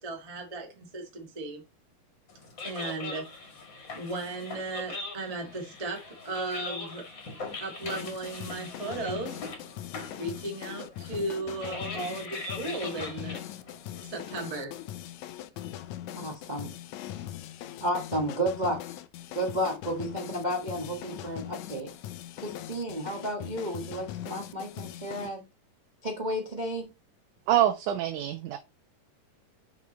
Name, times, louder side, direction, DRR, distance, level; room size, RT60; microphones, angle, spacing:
voice 1, 0.0-1.6 2.6-3.3 3.9-7.0 7.6-9.4 10.2-13.4 14.0-14.7, right 2 dB, 15° right, 1.2 m, -36 dB
sound 1, 2.3-14.5, left 3 dB, 40° left, 2.4 m, -41 dB
sound 2, 7.8-25.3, left 12 dB, 75° left, 2.0 m, -41 dB
voice 2, 16.1-16.7 17.8-18.8 19.3-21.9 22.4-25.4 26.0-26.9, equal, 35° right, 0.6 m, -32 dB
voice 3, 27.5-28.6, right 12 dB, 75° right, 2.1 m, -25 dB
6.3 x 5.9 x 4.1 m
omnidirectional pair, 3.7 m